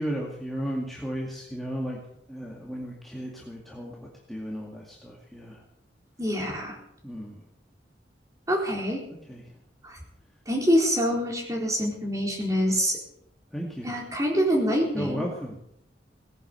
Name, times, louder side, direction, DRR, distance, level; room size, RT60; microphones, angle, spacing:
voice 1, 0.0-2.0 2.3-5.6 7.0-7.4 9.3-9.4 13.5-13.9 14.9-15.6, equal, ahead, -3 dB, 2.1 m, -34 dB
voice 2, 6.2-6.8 8.5-9.0 9.8-10.0 10.5-13.0 13.8-15.2, equal, 20° right, -1 dB, 4.1 m, -25 dB
18.5 x 10.5 x 6.9 m, 0.74 s
head